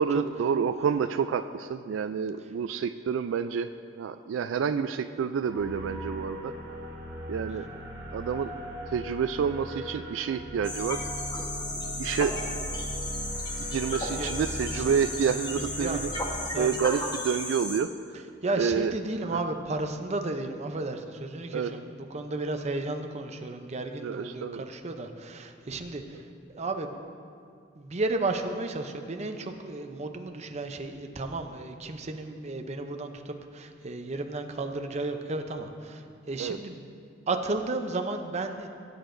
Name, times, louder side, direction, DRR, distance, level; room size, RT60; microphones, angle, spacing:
voice 1, 0.0-3.7 4.0-6.5 7.3-7.7 8.1-8.5 8.9-11.0 12.0-12.4 13.6-16.1 16.6-17.9 18.6-18.9 19.3-19.4 21.5-21.7 24.0-24.6 36.4-36.6, right 7 dB, 80° right, 10 dB, 0.3 m, -28 dB
sound 1, 5.5-16.3, equal, 15° right, 2.4 m, -38 dB
sound 2, 10.6-17.8, left 1 dB, 25° left, 1.2 m, -35 dB
voice 2, 18.4-26.3 26.5-26.9 27.8-36.8 37.3-38.7, right 2 dB, 35° right, 5 dB, 0.6 m, -33 dB
17.0 x 8.3 x 2.6 m, 2.3 s
head